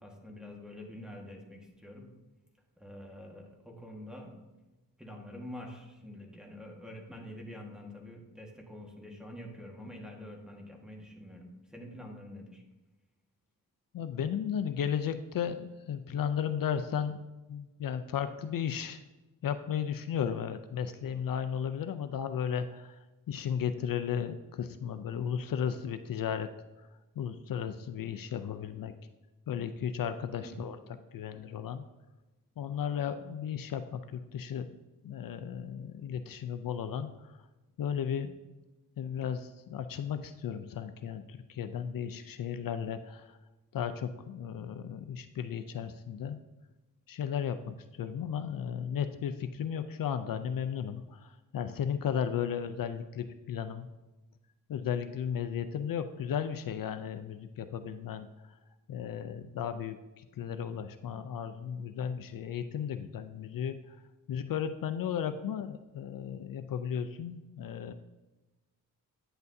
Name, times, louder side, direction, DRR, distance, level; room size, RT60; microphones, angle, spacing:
voice 1, 0.0-2.1 2.8-4.3 5.0-12.6 30.4-30.6, left 1 dB, ahead, 1 dB, 1.5 m, -46 dB
voice 2, 13.9-17.2 17.5-19.0 19.4-26.5 26.8-29.0 29.5-31.8 32.6-34.8 35.0-37.5 37.8-38.3 39.0-43.4 43.7-46.4 47.1-53.9 54.7-58.6 58.9-67.9, left 8 dB, 70° left, 10 dB, 0.5 m, -35 dB
9.4 x 8.0 x 2.7 m, 1.1 s
cardioid pair, 80°, 35 cm